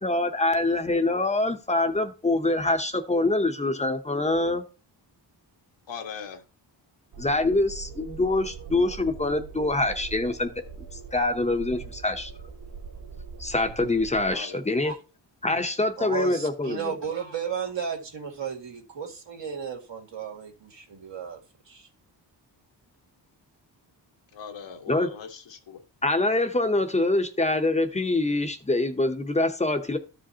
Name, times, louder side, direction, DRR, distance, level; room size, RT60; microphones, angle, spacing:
voice 1, 0.0-4.6 7.2-10.6 11.1-12.3 13.4-14.9 15.4-17.0 24.9-25.1 26.0-30.0, left 2 dB, 15° left, 0.7 m, -25 dB
voice 2, 5.9-6.4 14.3-14.6 24.3-25.8, left 6 dB, 80° left, 1.5 m, -40 dB
sound 1, 7.1-14.3, right 5 dB, 60° right, 2.2 m, -42 dB
voice 3, 16.0-21.4 21.7-21.9, right 6 dB, 85° right, 2.2 m, -34 dB
13.5 x 5.0 x 2.8 m
wide cardioid pair, 180°, 43 cm